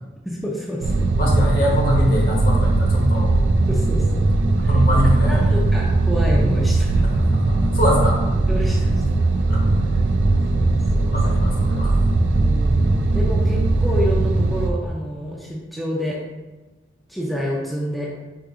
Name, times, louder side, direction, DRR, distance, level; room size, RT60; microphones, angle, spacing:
voice 1, 0.2-1.1 3.7-4.2 5.3-7.0 8.5-8.9 10.5-11.1 12.2-16.2 17.1-18.1, equal, ahead, -5 dB, 0.5 m, -28 dB
sound 1, 0.8-14.7, right 2 dB, 80° right, 0.4 m, -19 dB
voice 2, 1.2-3.3 4.7-5.6 7.2-8.3 9.5-9.8 11.1-12.0, equal, 50° left, -2 dB, 1.1 m, -23 dB
4.8 x 2.9 x 3.6 m, 1.1 s
head